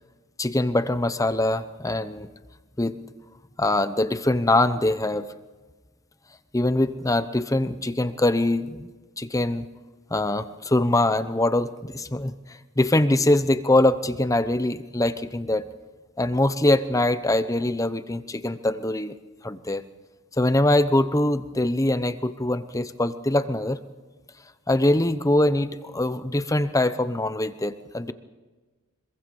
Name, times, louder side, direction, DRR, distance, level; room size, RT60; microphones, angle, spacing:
voice 1, 0.4-2.3 2.8-3.0 3.6-5.3 6.5-8.9 9.2-9.7 10.1-12.3 12.8-15.6 16.2-19.1 19.4-19.8 20.4-23.8 24.7-28.1, left 1 dB, 15° left, 12 dB, 0.9 m, -23 dB
25.0 x 23.0 x 5.5 m, 1.3 s
head